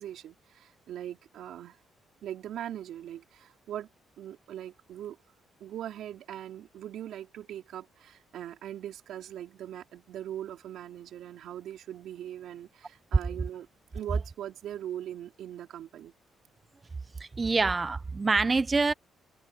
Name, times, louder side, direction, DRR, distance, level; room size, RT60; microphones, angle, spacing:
voice 1, 0.0-1.8 2.2-3.9 4.2-5.2 5.6-13.7 13.9-16.1, right 11 dB, 75° right, 4.8 m, -41 dB
voice 2, 17.2-18.9, right 3 dB, 25° right, 0.9 m, -26 dB
cardioid pair, 90°, 0 cm